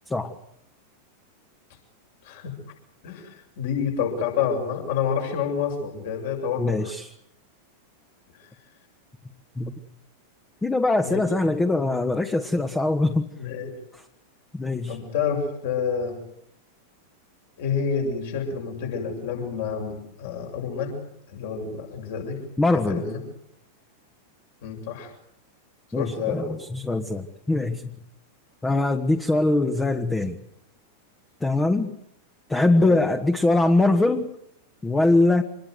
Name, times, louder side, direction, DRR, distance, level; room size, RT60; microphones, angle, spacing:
voice 1, 3.0-6.9 11.0-11.2 13.4-13.7 14.9-16.2 17.6-20.9 21.3-22.4 22.9-23.2 24.6-25.1 26.0-26.5 32.8-33.0, left 6 dB, 55° left, 3 dB, 7.5 m, -28 dB
voice 2, 6.6-7.1 9.6-9.7 10.6-13.3 13.9-14.0 14.5-15.0 22.6-23.0 25.9-27.9 28.6-30.4 31.4-31.9 32.5-34.3 34.8-35.4, left 2 dB, 10° left, 7 dB, 1.6 m, -22 dB
26.5 x 21.0 x 8.1 m, 0.76 s
figure-of-eight pair, 90°, 0 cm